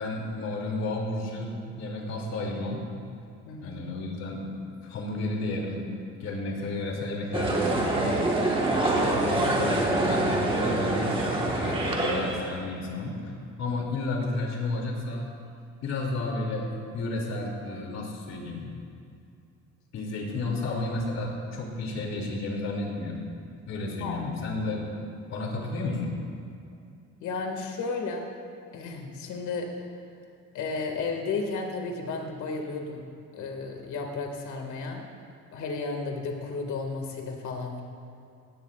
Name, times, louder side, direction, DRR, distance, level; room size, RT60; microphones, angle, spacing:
voice 1, 0.0-2.9 3.6-4.4 4.8-5.8 6.2-8.2 8.8-13.3 13.6-15.3 15.8-16.7 16.9-18.8 19.9-23.3 23.7-25.0 25.3-26.2, left 2 dB, 65° left, -1 dB, 2.8 m, -32 dB
voice 2, 3.5-3.8 24.0-24.3 27.2-28.3 28.7-29.7 30.5-33.0 33.3-35.0 35.5-37.8, left 4 dB, 80° left, 2 dB, 2.1 m, -33 dB
sound 1, 7.3-12.5, right 2 dB, 15° right, 1.5 m, -25 dB
18.0 x 15.5 x 2.5 m, 2.5 s
cardioid pair, 160°, 29 cm